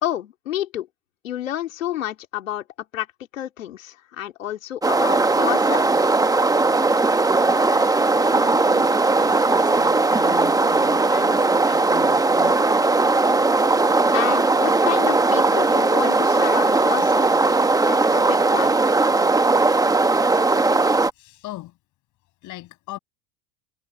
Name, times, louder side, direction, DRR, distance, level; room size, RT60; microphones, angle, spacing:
voice 1, 0.0-0.9 1.2-2.6 2.9-3.1 3.3-6.1 14.1-17.5 17.8-18.8, left 12 dB, 90° left, 2.6 m, -29 dB
sound 1, 4.8-21.1, right 3 dB, 10° right, 1.2 m, -18 dB
voice 2, 7.6-12.6 21.1-21.8 22.4-23.0, left 16 dB, 50° left, 6.8 m, -40 dB
hypercardioid pair, 95°, 38 cm